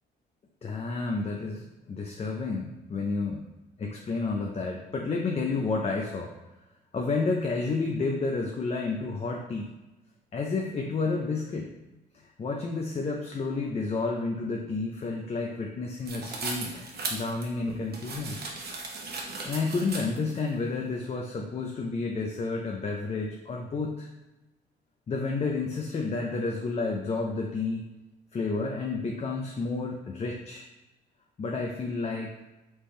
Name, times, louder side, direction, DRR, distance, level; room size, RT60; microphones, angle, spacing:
voice 1, 0.6-3.4 3.8-6.3 6.9-9.7 10.3-11.7 12.4-18.4 19.4-24.1 25.1-27.9 28.3-30.7 31.4-32.4, left 3 dB, 30° left, 1 dB, 0.5 m, -30 dB
sound 1, 16.1-20.4, right 3 dB, 55° right, 1.0 m, -37 dB
4.4 x 3.3 x 3.2 m, 1.0 s
cardioid pair, 90°, 20 cm